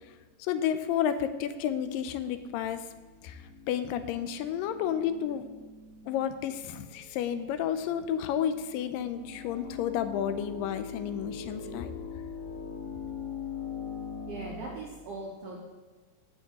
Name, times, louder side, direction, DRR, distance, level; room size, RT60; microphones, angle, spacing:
voice 1, 0.4-2.8 3.2-3.4 3.7-5.5 6.1-11.9, left 9 dB, 85° left, 10 dB, 2.2 m, -31 dB
sound 1, 1.4-14.8, left 6 dB, 55° left, 2.6 m, -43 dB
voice 2, 14.3-15.6, right 2 dB, 70° right, -3 dB, 1.4 m, -40 dB
15.0 x 5.2 x 2.9 m, 1.3 s
omnidirectional pair, 3.9 m